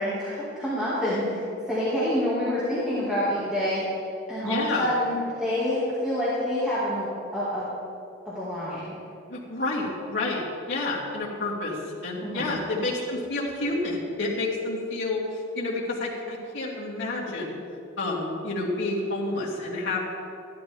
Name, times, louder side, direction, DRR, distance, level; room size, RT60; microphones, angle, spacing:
voice 1, 0.0-1.4 1.7-3.8 4.3-7.7 8.3-9.0 12.2-12.5, left 1 dB, 5° right, -11 dB, 2.0 m, -27 dB
voice 2, 4.4-4.9 9.3-17.6 18.0-20.0, left 2 dB, 65° left, -6 dB, 2.6 m, -29 dB
13.5 x 12.0 x 3.5 m, 2.6 s
head